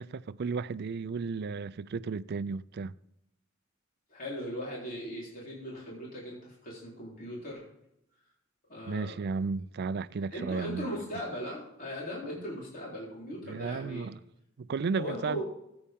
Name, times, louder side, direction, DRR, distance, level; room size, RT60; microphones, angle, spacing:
voice 1, 0.0-2.9 8.9-10.9 13.4-14.2 14.6-15.4, right 4 dB, 50° right, 0.4 m, -34 dB
voice 2, 4.1-7.6 8.7-9.2 10.3-14.1 15.0-15.4, equal, 45° left, 3.8 m, -38 dB
14.0 x 8.7 x 3.6 m
head